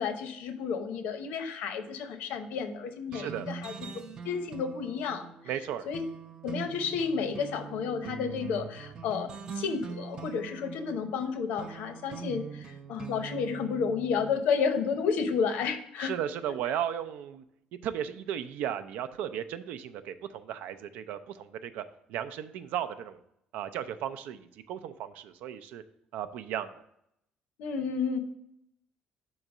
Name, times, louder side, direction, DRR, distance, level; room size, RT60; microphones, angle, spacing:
voice 1, 0.0-3.9 4.2-5.3 5.9-6.0 6.4-9.3 9.5-16.1 27.6-28.2, left 6 dB, 80° left, 8 dB, 0.8 m, -31 dB
sound 1, 3.1-14.4, right 6 dB, 30° right, 0.5 m, -43 dB
voice 2, 3.1-3.5 5.5-5.9 16.0-17.4 17.8-21.8 22.1-23.2 23.5-25.8 26.1-26.7, right 10 dB, 80° right, 11 dB, 0.5 m, -35 dB
5.5 x 3.9 x 6.0 m, 0.76 s
cardioid pair, 170°, 3 cm